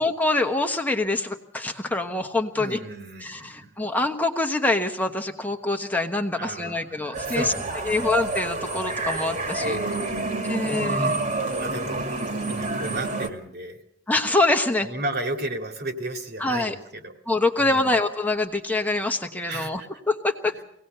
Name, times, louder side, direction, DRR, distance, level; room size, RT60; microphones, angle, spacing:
voice 1, 0.0-2.8 3.2-7.5 7.9-9.8 10.5-11.2 14.1-14.9 16.4-16.7 17.3-19.8 20.1-20.6, left 2 dB, 10° left, 4 dB, 1.1 m, -25 dB
voice 2, 2.5-3.7 6.3-8.1 9.6-10.9 11.3-12.1 12.5-13.8 14.8-17.1 17.6-17.9 19.5-19.9 20.5-20.6, right 1 dB, 55° right, 5 dB, 2.4 m, -34 dB
sound 1, 7.1-13.3, right 2 dB, 40° right, 2.1 m, -28 dB
24.5 x 18.0 x 6.8 m, 0.73 s
head